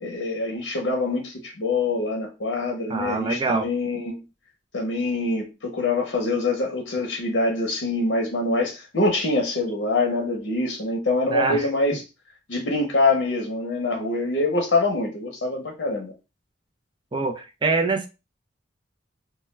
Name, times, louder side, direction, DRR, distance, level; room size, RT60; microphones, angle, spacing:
voice 1, 0.0-4.1 4.7-12.0 12.5-16.1, left 2 dB, 80° left, 0.6 m, -25 dB
voice 2, 2.9-3.7 11.3-11.7 17.1-18.1, right 3 dB, 25° right, 0.4 m, -24 dB
2.2 x 2.1 x 3.1 m
head